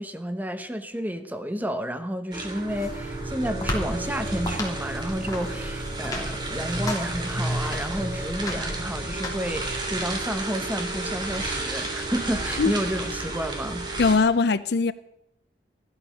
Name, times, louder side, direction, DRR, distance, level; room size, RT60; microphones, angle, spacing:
voice 1, 0.0-13.9, equal, 10° right, 1.1 m, -31 dB
sound 1, 2.3-14.2, right 2 dB, 25° right, 3.1 m, -33 dB
sound 2, 2.6-10.1, equal, 20° left, 3.2 m, -33 dB
voice 2, 14.0-14.9, left 4 dB, 65° left, 0.5 m, -20 dB
15.5 x 12.0 x 6.4 m
head